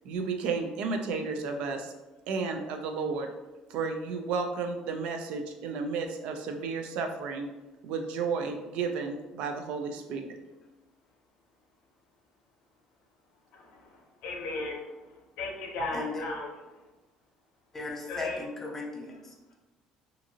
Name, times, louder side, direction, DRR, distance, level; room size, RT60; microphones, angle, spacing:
voice 1, 0.0-1.9 2.3-3.3 3.7-7.5 7.8-10.3, right 4 dB, 65° right, 5 dB, 0.3 m, -32 dB
voice 2, 13.5-13.8 14.2-14.8 15.4-16.5 18.1-18.4, left 2 dB, 70° left, 0 dB, 0.6 m, -35 dB
voice 3, 15.9-16.2 17.7-19.5, left 3 dB, 15° left, 0 dB, 0.4 m, -37 dB
2.6 x 2.5 x 2.7 m, 1.1 s
cardioid pair, 170°, 2 cm